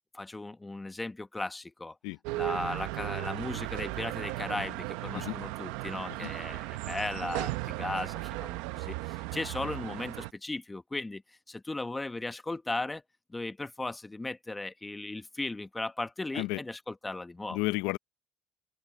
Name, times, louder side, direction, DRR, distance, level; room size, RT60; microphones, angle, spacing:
voice 1, 0.1-2.0 2.3-11.2 11.5-13.0 13.3-17.6, left 2 dB, 15° left, 1.2 m, -37 dB
sound 1, 2.2-10.3, right 19 dB, 85° right, 0.9 m, -36 dB
voice 2, 17.5-18.0, left 21 dB, 80° left, 0.5 m, -32 dB
open air
supercardioid pair, 85°, 0 cm